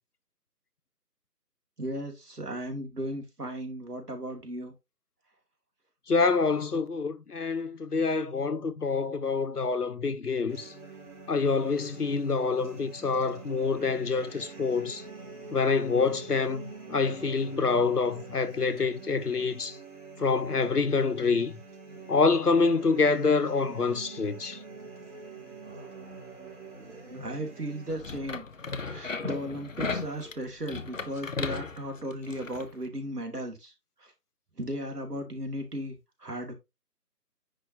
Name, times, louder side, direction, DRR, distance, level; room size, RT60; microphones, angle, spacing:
voice 1, 1.8-4.7 27.1-28.5 28.9-33.7 34.0-34.1 34.6-36.5, right 1 dB, 70° right, 2.5 m, -36 dB
voice 2, 6.1-10.7 11.3-15.0 15.5-16.6 16.9-19.8 20.2-21.6 22.1-24.6, left 4 dB, 70° left, 1.0 m, -26 dB
sound 1, 10.5-27.9, right 4 dB, 45° right, 3.3 m, -45 dB
sound 2, 27.9-32.7, left 4 dB, 50° left, 0.8 m, -36 dB
9.8 x 4.0 x 2.8 m
figure-of-eight pair, 160°, 49 cm